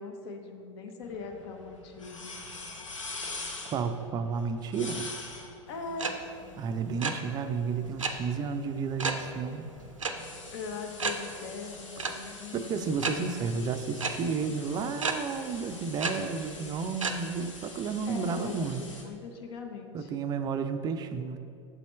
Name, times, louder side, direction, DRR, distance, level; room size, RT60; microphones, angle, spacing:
voice 1, 0.0-2.4 5.7-6.2 10.5-12.6 18.1-20.1, left 4 dB, 55° left, 4 dB, 0.8 m, -40 dB
sound 1, 1.0-19.0, left 3 dB, 80° left, 0.9 m, -45 dB
voice 2, 3.7-5.1 6.6-9.7 12.5-18.9 19.9-21.4, right 5 dB, 25° right, 9 dB, 0.4 m, -32 dB
sound 2, 6.0-6.1 6.4-6.6 6.8-7.1 8.0-8.1 9.0-9.2 10.0-10.1 10.5-10.6 11.0-11.1 12.0-12.1 13.0-13.1 14.0-14.1 15.0-15.1 16.0-16.1 17.0-17.1, right 5 dB, 90° right, 0.5 m, -30 dB
6.7 x 4.2 x 4.2 m, 2.6 s
figure-of-eight pair, 90°, 16 cm